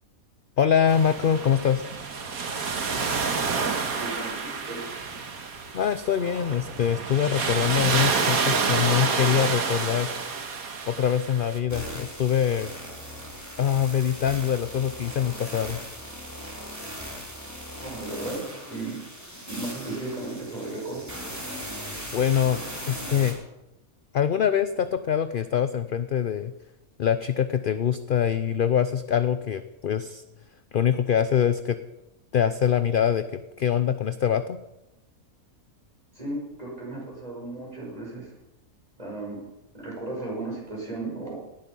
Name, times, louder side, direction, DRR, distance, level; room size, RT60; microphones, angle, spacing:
voice 1, 0.6-1.8 5.7-10.1 10.9-12.7 13.6-15.8 22.1-23.4 24.1-26.5 27.0-30.2 30.7-31.8 32.3-34.6, left 8 dB, 55° left, 12 dB, 0.6 m, -24 dB
sound 1, 0.9-11.6, right 5 dB, 90° right, 1.9 m, -28 dB
voice 2, 4.0-4.8 17.8-19.0 19.5-21.1 36.1-38.3 39.0-39.4 39.7-41.4, right 2 dB, 25° right, -3 dB, 5.7 m, -35 dB
sound 2, 11.7-23.3, equal, 10° right, 3.7 m, -38 dB
18.0 x 12.0 x 5.4 m, 0.97 s
omnidirectional pair, 1.5 m